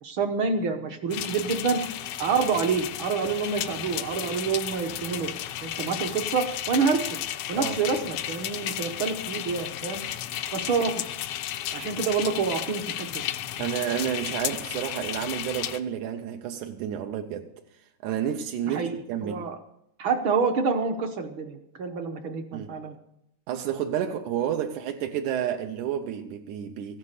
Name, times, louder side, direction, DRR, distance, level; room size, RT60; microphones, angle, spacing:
voice 1, 0.0-1.8 2.2-5.3 5.6-7.1 7.5-10.0 10.5-10.9 11.7-13.3 18.7-18.9 19.2-19.6 20.0-22.9, right 5 dB, 60° right, 1.3 m, -27 dB
sound 1, 1.1-15.8, left 11 dB, 85° left, 1.3 m, -33 dB
voice 2, 13.6-17.5 18.0-19.4 22.5-22.7 23.5-27.0, right 9 dB, 80° right, 2.3 m, -30 dB
15.0 x 11.5 x 6.6 m
omnidirectional pair, 3.5 m